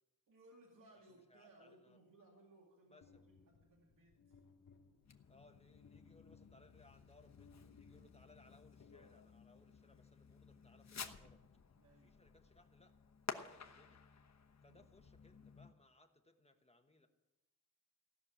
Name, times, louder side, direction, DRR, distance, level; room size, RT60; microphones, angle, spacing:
voice 1, 0.3-3.0 3.3-4.4 11.7-12.1 14.6-14.9, right 2 dB, 75° right, -2 dB, 2.4 m, -65 dB
voice 2, 1.3-2.0 2.9-3.2 5.3-11.4 12.0-12.9 13.3-14.0 14.6-17.1, left 2 dB, 20° left, 5 dB, 1.2 m, -67 dB
sound 1, 3.0-9.6, left 4 dB, 80° left, 1.6 m, -66 dB
Fireworks, 5.0-15.7, left 6 dB, 55° left, 1.1 m, -54 dB
16.5 x 6.5 x 9.9 m, 0.99 s
wide cardioid pair, 130°, 33 cm